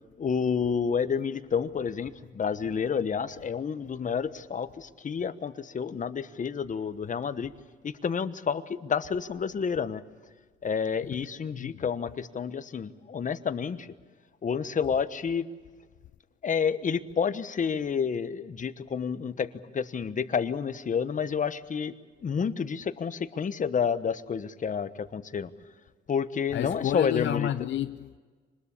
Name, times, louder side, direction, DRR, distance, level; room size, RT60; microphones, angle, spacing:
voice 1, 0.2-7.5 7.8-10.0 10.6-13.9 14.4-15.5 16.4-21.9 22.2-25.5 26.1-27.5, left 6 dB, 40° left, 1.2 m, -29 dB
voice 2, 11.5-11.8 26.5-28.2, left 11 dB, 70° left, 0.7 m, -30 dB
25.0 x 20.5 x 8.4 m
cardioid pair, 90°, 20 cm